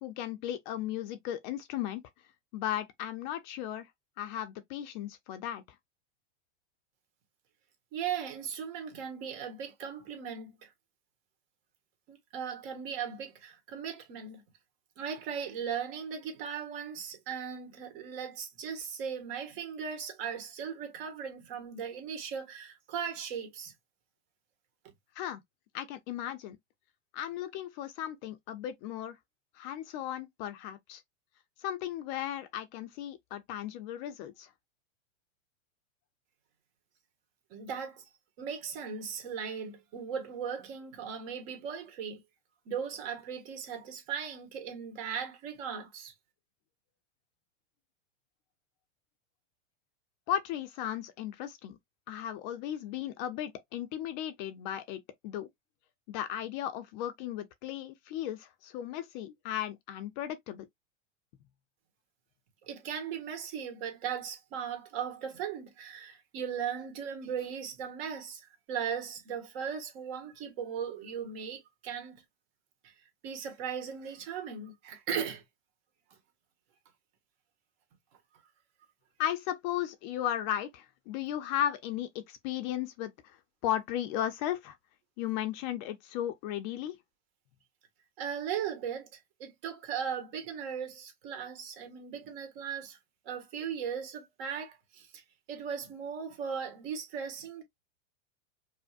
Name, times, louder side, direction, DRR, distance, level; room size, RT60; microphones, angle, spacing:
voice 1, 0.0-2.0 2.5-3.9 4.2-5.6 25.2-25.4 25.7-26.6 27.1-29.2 29.5-31.0 31.6-34.5 50.3-51.8 52.1-55.5 56.1-60.6 79.2-83.4 83.6-84.8 85.2-87.0, left 11 dB, 40° left, 0.5 m, -35 dB
voice 2, 7.9-10.7 12.1-14.4 15.0-23.7 37.5-38.0 38.4-42.2 42.6-46.1 62.7-68.4 68.7-72.1 72.8-72.9 73.2-75.4 88.2-93.0 93.2-95.2 95.5-97.6, right 7 dB, 55° right, 1.6 m, -38 dB
5.2 x 2.1 x 2.4 m
supercardioid pair, 145°, 36 cm